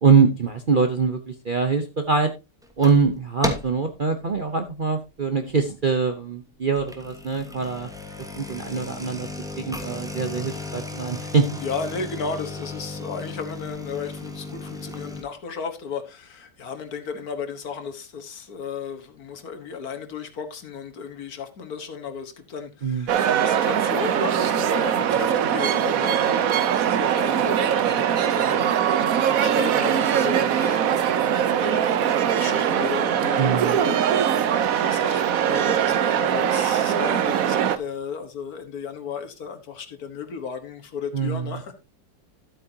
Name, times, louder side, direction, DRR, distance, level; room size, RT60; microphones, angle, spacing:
voice 1, 0.0-2.3 2.8-7.9 8.2-9.3 9.6-11.5 22.8-23.1 33.4-33.8 41.1-41.6, right 5 dB, 40° right, 0.8 m, -23 dB
sound 1, 2.6-3.1 3.4-3.9 4.3-4.6 5.2-5.3 5.5-5.6 6.6-15.2, left 2 dB, ahead, 1.2 m, -35 dB
voice 2, 11.6-31.1 31.4-41.8, left 5 dB, 60° left, 1.8 m, -34 dB
sound 2, 23.1-37.8, right 9 dB, 60° right, 1.1 m, -22 dB
12.5 x 8.4 x 2.8 m
omnidirectional pair, 1.8 m